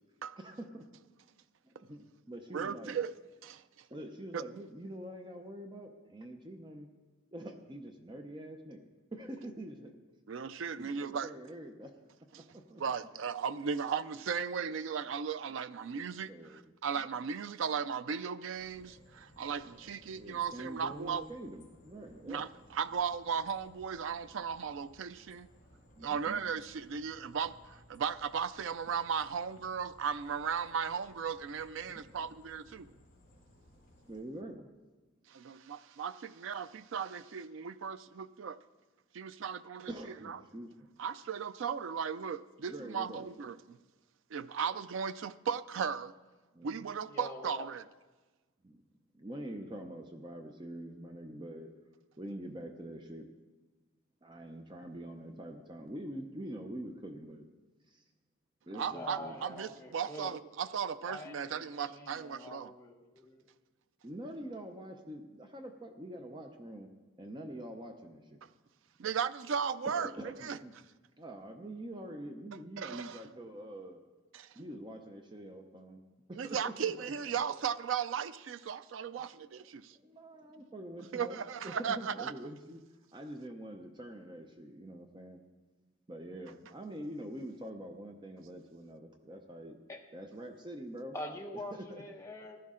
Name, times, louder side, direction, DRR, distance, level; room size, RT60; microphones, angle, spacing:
voice 1, 0.4-0.9 1.6-3.0 3.9-6.9 7.3-8.8 9.1-10.0 10.8-11.9 12.5-12.8 15.8-16.6 16.9-17.0 20.1-22.5 25.9-26.4 31.9-32.1 34.1-34.7 39.9-40.7 42.7-43.3 46.5-46.8 48.6-48.8 49.1-51.7 52.2-53.3 54.2-57.5 57.9-58.0 58.7-59.4 64.0-66.9 67.2-68.4 69.8-70.7 71.2-74.0 74.5-76.0 76.3-76.7 79.6-82.8 83.1-85.4 86.1-89.8 90.1-91.1 91.7-92.0, right 1 dB, 20° right, 0.6 m, -45 dB
voice 2, 2.5-3.1 3.4-3.6 4.3-4.4 10.3-11.3 12.3-12.4 12.8-21.2 22.3-25.5 26.0-32.9 35.3-38.6 39.1-39.9 40.2-40.4 41.0-43.8 44.3-46.1 46.6-47.8 58.7-62.7 69.0-70.6 72.8-73.2 74.3-74.5 76.3-80.0 81.1-82.3, right 7 dB, 70° right, 0.4 m, -36 dB
sound 1, 18.5-34.2, equal, 40° left, 2.3 m, -61 dB
voice 3, 47.1-47.7 58.9-60.4 61.1-63.4 89.9-90.0 91.1-92.6, left 1 dB, 15° left, 1.0 m, -45 dB
15.0 x 11.5 x 3.7 m
head